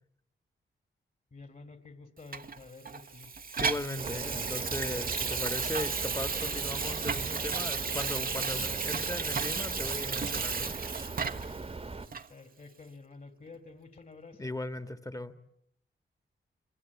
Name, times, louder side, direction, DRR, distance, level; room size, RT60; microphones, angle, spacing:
voice 1, 1.3-3.3 12.3-14.6, left 3 dB, 45° left, 2.9 m, -50 dB
Water tap faucet / Sink (filling or washing), 2.3-11.6 12.1-12.3, right 5 dB, 45° right, 1.2 m, -33 dB
voice 2, 3.6-11.0 14.4-15.3, left 2 dB, 15° left, 1.7 m, -38 dB
sound 1, 4.0-12.1, right 3 dB, 30° right, 1.5 m, -40 dB
29.0 x 23.0 x 8.6 m
cardioid pair, 80°, 20 cm